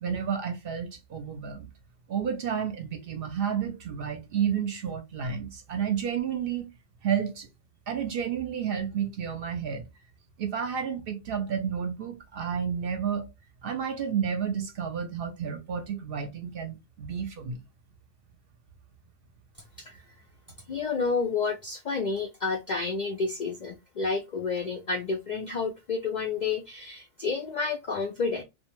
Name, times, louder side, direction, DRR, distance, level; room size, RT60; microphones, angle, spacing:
voice 1, 0.0-1.7 2.1-6.7 7.0-7.5 7.9-9.8 10.4-13.3 13.6-17.6, right 7 dB, 60° right, 0.7 m, -31 dB
voice 2, 20.7-28.4, left 4 dB, 65° left, 0.4 m, -30 dB
2.4 x 2.2 x 2.9 m
omnidirectional pair, 1.2 m